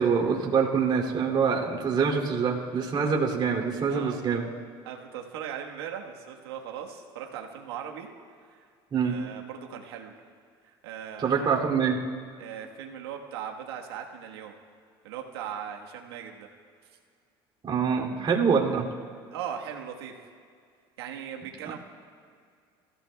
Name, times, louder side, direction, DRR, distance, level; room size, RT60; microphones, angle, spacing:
voice 1, 0.0-4.5 8.9-9.2 11.2-12.0 17.6-18.9, right 6 dB, 40° right, -1 dB, 2.8 m, -25 dB
voice 2, 3.8-4.2 4.8-8.1 8.5-8.7 9.0-10.1 10.6-11.6 12.4-14.5 15.0-16.5 19.3-20.1 21.0-21.8, right 8 dB, 90° right, 1 dB, 1.4 m, -39 dB
30.0 x 15.5 x 2.3 m, 2.1 s
supercardioid pair, 80°, 13 cm